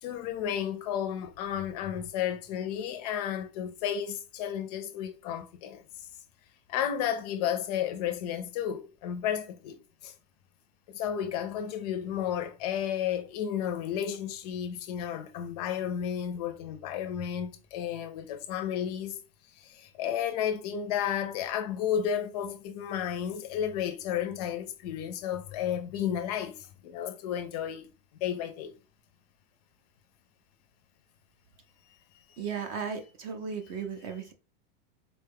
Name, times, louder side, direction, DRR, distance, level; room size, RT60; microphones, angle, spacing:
voice 1, 0.0-5.8 6.7-10.1 10.9-19.2 19.6-27.9 28.2-28.7, left 9 dB, 45° left, 0.4 m, -32 dB
voice 2, 32.4-34.3, right 6 dB, 30° right, 0.4 m, -35 dB
3.9 x 2.2 x 3.4 m
supercardioid pair, 160°, 30 cm